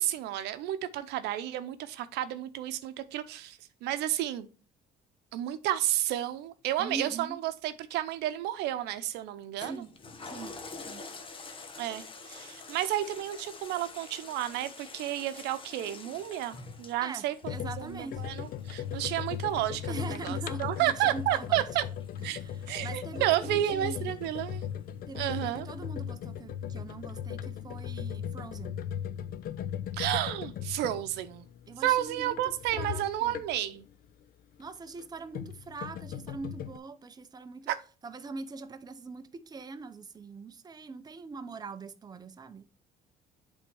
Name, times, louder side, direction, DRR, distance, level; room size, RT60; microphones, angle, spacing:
voice 1, 0.0-4.5 5.3-9.8 11.8-17.3 17.8-21.8 22.2-22.4 22.7-24.6 25.1-25.7 29.9-31.5 31.8-33.8 37.7-37.8, right 13 dB, 85° right, 0.7 m, -31 dB
voice 2, 6.8-7.4 9.6-9.9 10.3-10.5 10.9-11.0 17.0-18.2 19.9-21.6 22.2-24.2 25.1-28.8 31.7-32.4 32.7-33.4 34.6-37.7 38.0-42.7, right 4 dB, 25° right, 0.7 m, -42 dB
Toilet flush, 9.6-24.4 24.9-25.0, left 3 dB, 30° left, 1.1 m, -48 dB
sound 1, 17.4-33.8 34.9-36.8, left 9 dB, 60° left, 0.5 m, -38 dB
8.2 x 3.6 x 4.6 m
cardioid pair, 110°, 17 cm